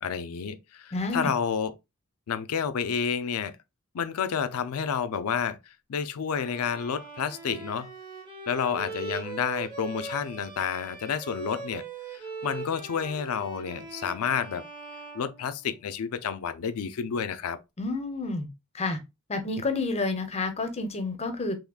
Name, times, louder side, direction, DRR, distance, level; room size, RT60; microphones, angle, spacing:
voice 1, 0.0-1.7 2.3-3.5 3.9-5.6 5.9-7.9 8.5-11.8 12.1-14.6 15.1-17.6, left 7 dB, 75° left, 0.4 m, -30 dB
voice 2, 0.9-1.3 17.8-18.5 18.7-19.0 19.3-21.5, left 3 dB, 30° left, 0.6 m, -29 dB
Bowed string instrument, 6.3-16.0, right 4 dB, 20° right, 0.9 m, -41 dB
3.5 x 3.1 x 2.2 m
head